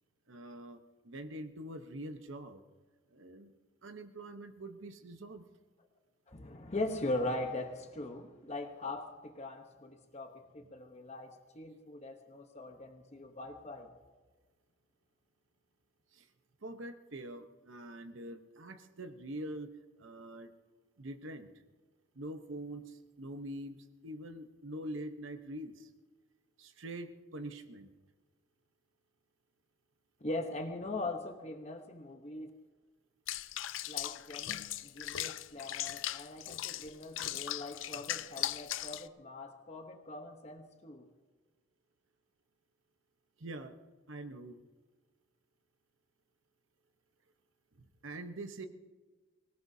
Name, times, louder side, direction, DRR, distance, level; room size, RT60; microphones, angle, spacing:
voice 1, 0.3-0.8 1.0-2.6 3.1-3.5 3.8-5.4 10.6-10.7 16.1-16.3 16.6-19.7 20.0-20.5 21.0-21.5 22.1-23.8 24.0-25.9 26.6-27.9 43.4-43.8 44.1-44.6 47.8-48.7, right 1 dB, 70° right, 1.0 m, -44 dB
voice 2, 6.3-13.9 30.2-32.5 33.9-41.0, left 2 dB, 35° left, 1.0 m, -41 dB
Water / Bathtub (filling or washing), 33.3-39.1, left 13 dB, 65° left, 0.5 m, -38 dB
24.5 x 17.5 x 2.8 m
head